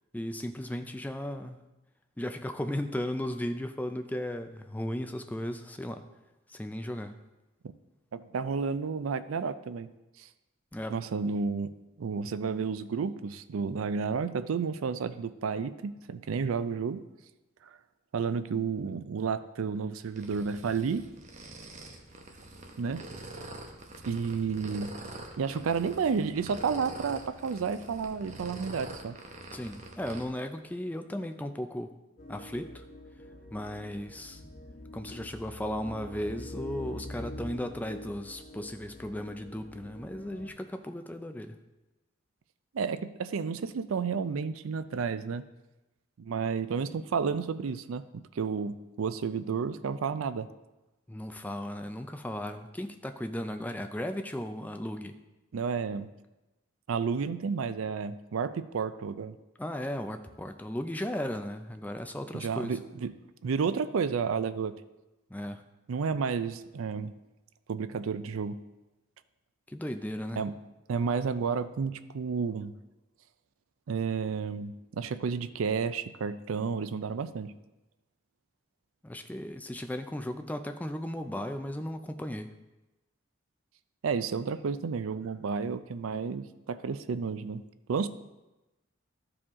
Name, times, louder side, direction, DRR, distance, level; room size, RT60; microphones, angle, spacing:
voice 1, 0.1-1.6 2.2-6.0 6.5-7.2 10.7-11.0 29.5-31.9 32.3-32.8 33.5-34.4 34.9-41.6 51.1-55.1 59.6-62.8 65.3-65.6 69.7-70.4 79.0-82.5, left 1 dB, 10° left, 7 dB, 0.4 m, -36 dB
voice 2, 8.1-9.9 10.2-10.3 10.9-11.7 12.0-17.0 18.1-21.1 22.8-23.1 24.1-25.0 25.4-29.2 42.7-45.5 46.2-48.0 48.3-50.5 55.5-56.1 56.9-59.4 62.3-63.1 63.4-64.7 65.9-67.1 67.7-68.6 70.4-70.6 70.9-72.7 73.9-77.6 84.0-87.6 87.9-88.1, right 5 dB, 85° right, 13 dB, 0.4 m, -31 dB
sound 1, 20.1-30.3, right 2 dB, 35° right, 0.8 m, -45 dB
sound 2, 32.2-40.5, left 1 dB, 40° left, 0.9 m, -44 dB
13.5 x 4.9 x 3.6 m, 1.0 s
head